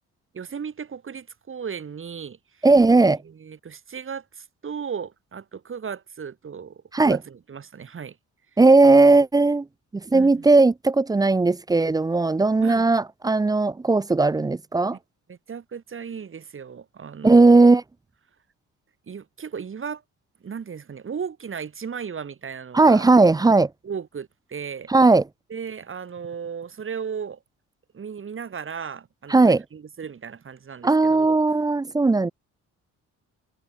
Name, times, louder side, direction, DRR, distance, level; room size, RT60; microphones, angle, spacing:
voice 1, 0.3-2.7 2.9-8.2 10.1-10.5 12.6-12.8 15.3-17.6 19.1-20.0 20.4-23.1 23.8-24.9 25.5-27.4 27.9-31.4, right 6 dB, 45° right, 3.5 m, -36 dB
voice 2, 2.6-3.2 6.9-7.2 8.6-9.7 9.9-15.0 17.2-17.8 22.7-23.7 24.9-25.2 29.3-29.6 30.8-32.3, right 3 dB, 15° right, 0.4 m, -17 dB
cardioid pair, 90°, 30 cm